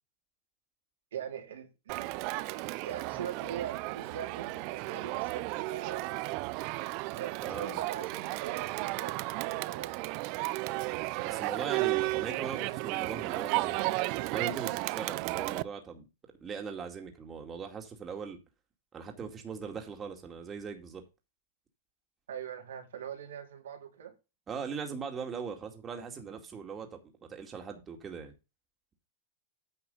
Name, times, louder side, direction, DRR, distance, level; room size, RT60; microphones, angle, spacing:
voice 1, 1.1-2.1 2.5-6.4 7.2-10.0 22.3-24.1, right 9 dB, 85° right, 3.2 m, -42 dB
Crowd, 1.9-15.6, right 22 dB, 50° right, 0.4 m, -34 dB
voice 2, 7.4-7.8 11.2-13.9 14.3-16.0 16.4-18.4 18.9-21.0 24.5-28.3, right 6 dB, 25° right, 2.2 m, -40 dB
9.5 x 5.4 x 5.4 m
hypercardioid pair, 110°, 0 cm